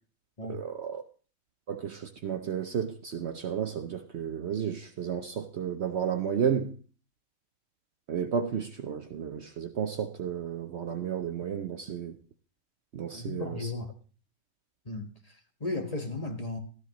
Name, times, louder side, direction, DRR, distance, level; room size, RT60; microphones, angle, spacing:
voice 1, 0.5-1.0 1.7-6.8 8.1-12.2 12.9-13.7, right 8 dB, 55° right, 0.9 m, -32 dB
voice 2, 13.1-13.9 14.8-16.6, left 2 dB, 25° left, 1.4 m, -35 dB
13.5 x 13.0 x 3.0 m
omnidirectional pair, 1.5 m